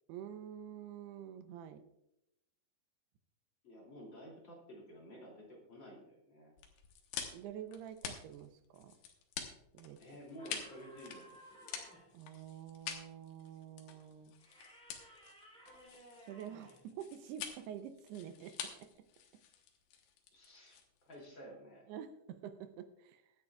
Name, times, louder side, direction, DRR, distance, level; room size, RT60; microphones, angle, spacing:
voice 1, 0.1-1.8 7.3-9.0 9.7-10.0 12.1-14.4 16.2-18.9 21.9-23.3, right 9 dB, 80° right, 9 dB, 2.6 m, -48 dB
voice 2, 3.6-6.5 10.0-11.7 20.3-20.8 21.0-21.8, equal, 30° left, -2 dB, 2.9 m, -52 dB
sound 1, 6.6-21.2, left 8 dB, 80° left, 3.5 m, -47 dB
sound 2, 10.4-12.2 14.4-16.9, equal, ahead, 3.5 m, -58 dB
23.0 x 9.2 x 2.4 m, 0.85 s
omnidirectional pair, 5.1 m